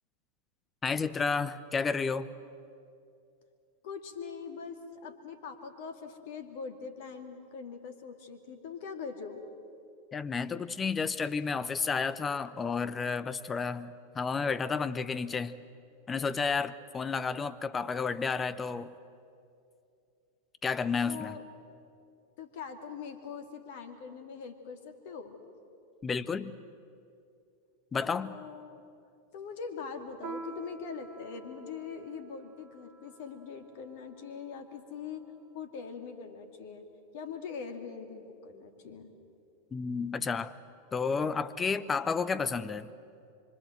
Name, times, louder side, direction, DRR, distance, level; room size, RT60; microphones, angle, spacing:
voice 1, 0.8-2.3 10.1-15.6 16.1-18.9 20.6-21.3 26.0-26.6 27.9-28.4 39.7-40.5 40.9-42.9, left 5 dB, 20° left, 15 dB, 0.9 m, -31 dB
voice 2, 3.8-9.4 21.1-21.4 22.4-25.4 28.0-28.8 29.3-35.3 35.5-36.9 37.1-39.1, left 6 dB, 50° left, 7 dB, 2.4 m, -42 dB
Piano, 30.2-35.2, right 4 dB, 35° right, 2.9 m, -48 dB
25.5 x 25.0 x 7.8 m, 2.5 s
figure-of-eight pair, 90°, 0 cm